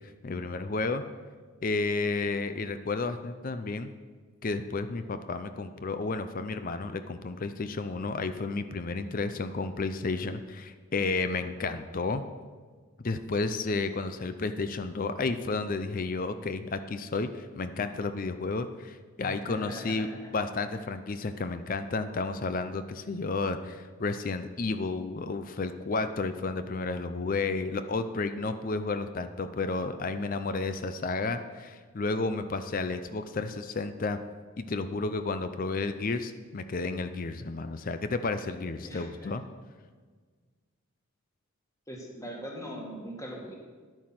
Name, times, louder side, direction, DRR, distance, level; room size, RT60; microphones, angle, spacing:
voice 1, 0.2-1.0 1.6-3.9 4.4-12.2 13.0-20.1 20.3-34.2 34.6-39.4, left 3 dB, 40° left, 10 dB, 0.5 m, -32 dB
voice 2, 19.2-20.3 20.7-20.8 38.8-39.3 41.9-43.5, equal, 15° left, -1 dB, 2.0 m, -41 dB
10.5 x 8.9 x 5.9 m, 1.5 s
head